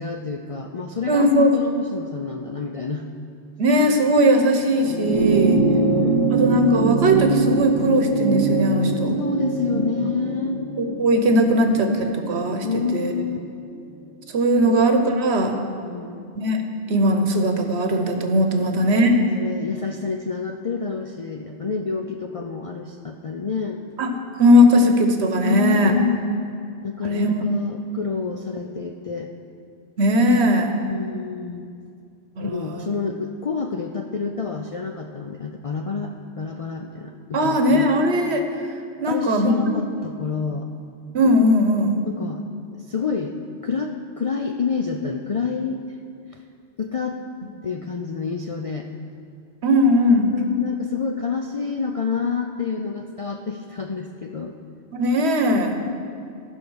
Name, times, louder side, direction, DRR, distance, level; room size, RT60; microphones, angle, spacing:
voice 1, 0.0-3.0 5.3-6.4 9.2-10.6 12.6-13.4 14.6-14.8 15.8-16.3 18.5-23.8 25.4-26.2 26.8-29.3 30.8-31.7 32.4-37.9 39.1-40.7 42.1-42.4 42.9-43.3 43.6-45.8 46.3-46.4 46.8-47.2 47.6-48.9 50.3-54.5 55.8-55.9, left 5 dB, 50° left, 3 dB, 0.4 m, -28 dB
voice 2, 1.1-1.5 3.6-5.6 6.3-9.2 9.7-9.9 10.8-12.7 12.9-13.1 14.3-15.5 16.4-16.6 16.9-19.2 24.0-24.1 24.4-25.9 27.1-27.5 30.0-30.7 32.4-32.9 37.3-38.4 39.0-39.5 41.1-42.0 49.6-50.3 54.9-55.8, equal, 70° right, 5 dB, 1.2 m, -19 dB
sound 1, 4.7-13.4 14.6-14.7, right 3 dB, 30° right, 1.3 m, -23 dB
15.0 x 5.4 x 6.3 m, 2.4 s
omnidirectional pair, 1.2 m